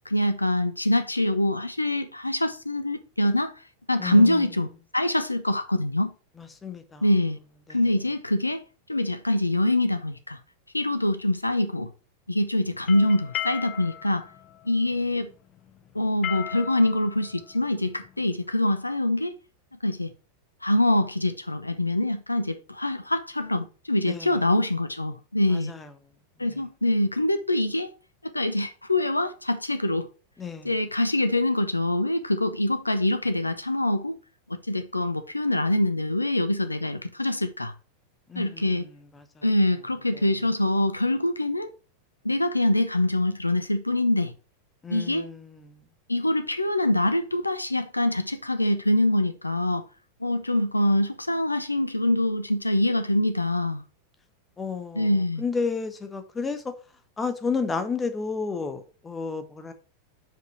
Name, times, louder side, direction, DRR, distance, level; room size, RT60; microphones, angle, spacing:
voice 1, 0.1-3.5 3.9-4.7 4.9-6.1 7.0-7.4 7.7-8.6 8.9-10.4 10.7-11.9 12.3-14.3 14.6-15.3 15.9-19.4 19.8-20.1 20.6-25.7 26.4-27.9 28.2-30.1 30.6-34.2 34.7-37.7 38.4-38.9 39.4-41.7 42.2-44.3 44.9-45.3 46.1-49.9 50.2-53.8 54.9-55.4, left 1 dB, 85° left, 0.7 m, -24 dB
voice 2, 4.0-4.5 6.4-7.1 7.7-7.8 24.0-24.5 25.5-25.9 26.4-26.6 30.4-30.8 38.3-39.5 40.1-40.3 44.8-45.8 54.6-56.7 57.2-59.7, left 5 dB, 15° left, 1.2 m, -32 dB
sound 1, 12.7-18.4, left 11 dB, 35° left, 0.4 m, -37 dB
6.1 x 5.1 x 5.6 m
figure-of-eight pair, 90°, 0 cm